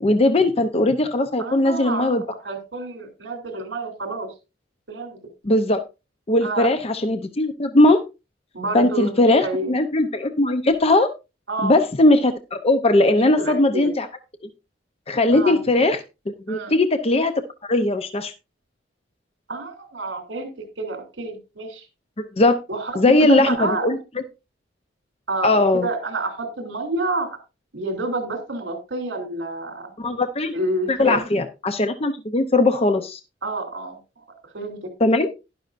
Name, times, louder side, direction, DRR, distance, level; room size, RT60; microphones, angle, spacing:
voice 1, 0.0-2.2 5.4-5.8 6.3-8.0 8.7-11.1 11.6-14.1 15.1-16.0 16.5-17.3 17.7-18.3 22.4-22.6 22.9-24.0 25.4-25.9 30.0-30.5 30.9-33.2 35.0-35.3, left 2 dB, 35° left, 8 dB, 0.7 m, -19 dB
voice 2, 1.4-2.2 2.4-4.3 4.9-5.2 6.4-6.7 8.5-9.7 11.5-11.8 13.4-13.9 15.3-15.6 16.5-16.7 19.5-21.8 22.7-22.9 23.3-23.9 25.3-27.4 27.7-29.9 30.5-31.2 33.4-34.2 34.5-34.9, right 2 dB, 70° right, 5 dB, 3.1 m, -29 dB
11.5 x 11.0 x 2.5 m, 0.27 s
head